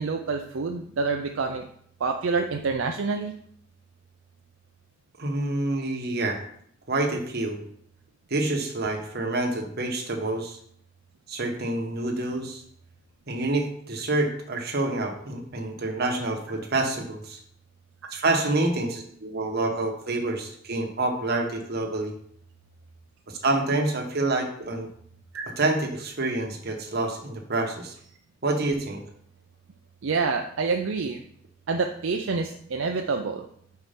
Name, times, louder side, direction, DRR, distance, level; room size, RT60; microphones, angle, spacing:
voice 1, 0.0-1.7 2.0-3.3 25.3-25.5 30.0-31.2 31.7-33.4, right 4 dB, 70° right, 3 dB, 0.5 m, -27 dB
voice 2, 5.2-6.4 6.9-7.6 8.3-10.6 11.3-12.6 13.3-17.4 18.1-22.1 23.3-24.9 25.6-27.9 28.4-29.0, right 2 dB, 50° right, 2 dB, 1.2 m, -27 dB
5.6 x 4.6 x 5.1 m, 0.64 s
head